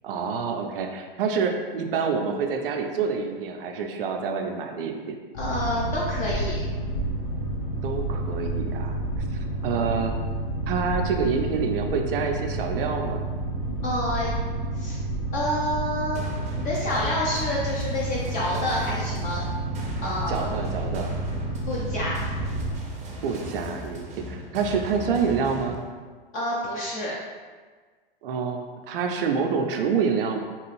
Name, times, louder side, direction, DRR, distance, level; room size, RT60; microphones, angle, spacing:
voice 1, 0.0-5.2 7.8-8.9 9.6-10.2 10.7-13.3 20.3-21.1 23.2-25.8 28.2-30.4, right 5 dB, 70° right, 3 dB, 0.5 m, -27 dB
Boat Water vehicle, 5.3-22.8, right 2 dB, 55° left, 0.8 m, -30 dB
voice 2, 5.3-6.7 13.8-14.3 14.8-15.0 15.3-16.3 16.5-19.4 20.0-20.5 21.7-22.2 26.3-27.1, left 1 dB, 30° left, -5 dB, 0.5 m, -28 dB
sound 1, 16.1-25.7, equal, 25° right, 0.6 m, -37 dB
3.0 x 2.4 x 3.1 m, 1.5 s
hypercardioid pair, 105°, 29 cm